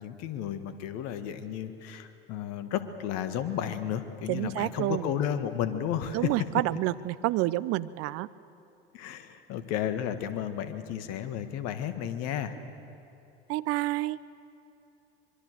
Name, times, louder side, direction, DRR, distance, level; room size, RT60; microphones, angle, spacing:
voice 1, 0.0-6.3 8.9-12.5, left 9 dB, 55° left, 10 dB, 1.8 m, -33 dB
voice 2, 4.3-5.0 6.1-8.3 13.5-14.2, right 17 dB, 50° right, 18 dB, 0.7 m, -29 dB
24.5 x 22.5 x 6.8 m, 2.8 s
hypercardioid pair, 75°, 30 cm